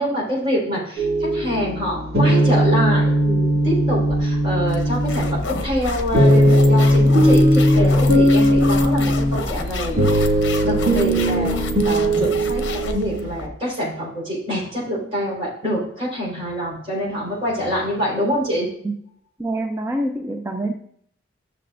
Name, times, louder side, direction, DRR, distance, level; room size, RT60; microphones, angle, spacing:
voice 1, 0.0-18.7, equal, 30° right, -6 dB, 4.1 m, -25 dB
sound 1, 1.0-13.3, equal, 50° right, 2.4 m, -18 dB
sound 2, 4.7-13.5, left 2 dB, 60° left, 0.8 m, -29 dB
voice 2, 19.4-20.7, right 1 dB, 15° right, 4 dB, 0.4 m, -25 dB
13.5 x 6.6 x 2.5 m, 0.67 s
head